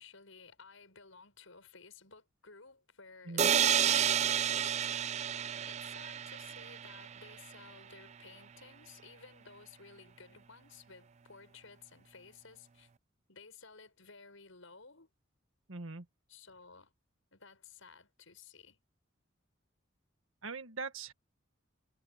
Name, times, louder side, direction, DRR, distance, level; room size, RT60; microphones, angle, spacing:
voice 1, 0.0-12.9 13.3-15.1 16.3-16.9 17.3-18.8, left 5 dB, 85° left, 6.2 m, -56 dB
sound 1, 3.4-7.2, right 9 dB, 35° right, 0.3 m, -30 dB
voice 2, 15.7-16.1 20.4-21.1, right 4 dB, 85° right, 1.8 m, -41 dB
head